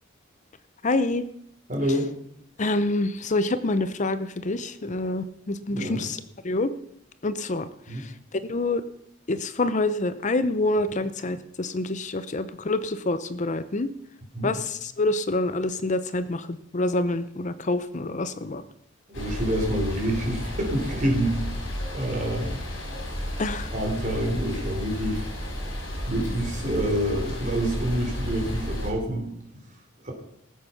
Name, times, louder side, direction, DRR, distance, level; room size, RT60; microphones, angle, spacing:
voice 1, 0.8-1.2 2.6-6.2 6.4-6.7 7.2-7.7 8.4-8.8 9.3-13.9 14.4-18.6 23.4-23.7, left 2 dB, 40° left, 12 dB, 0.6 m, -26 dB
voice 2, 1.7-2.1 5.7-6.0 7.9-8.0 14.3-14.5 19.1-21.4 21.9-22.6 23.7-25.2 26.1-29.3 30.0-30.1, right 1 dB, 40° right, 0 dB, 3.7 m, -27 dB
sound 1, 19.1-28.9, left 1 dB, 70° left, 5.0 m, -32 dB
19.0 x 7.9 x 5.8 m, 0.74 s
head